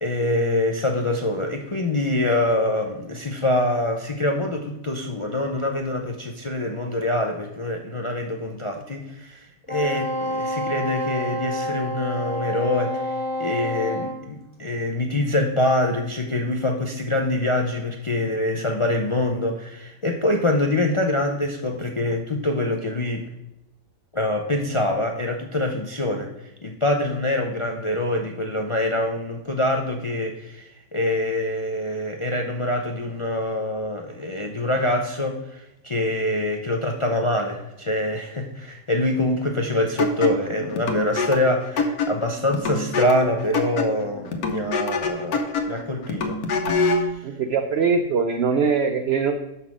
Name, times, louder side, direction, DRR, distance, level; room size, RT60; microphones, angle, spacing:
voice 1, 0.0-13.1 13.4-23.3 24.1-26.3 26.6-46.4 46.8-47.3, left 1 dB, 55° left, 2 dB, 0.3 m, -25 dB
Wind instrument woodwind instrument, 9.7-14.2, left 1 dB, 10° left, 2.5 m, -28 dB
sound 1, 40.0-47.1, left 3 dB, 75° left, 1.3 m, -26 dB
voice 2, 47.2-49.4, right 5 dB, 65° right, 6 dB, 0.6 m, -22 dB
6.0 x 5.5 x 6.1 m, 0.90 s
omnidirectional pair, 1.6 m